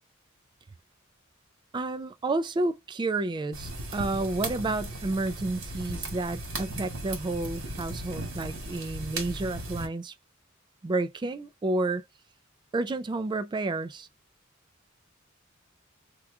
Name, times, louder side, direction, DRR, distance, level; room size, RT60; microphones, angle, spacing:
voice 1, 1.7-10.1 10.8-12.0 12.7-14.1, right 2 dB, 20° right, 0.3 m, -30 dB
sound 1, 3.5-9.9, right 2 dB, 75° right, 1.7 m, -36 dB
3.0 x 2.3 x 3.4 m
head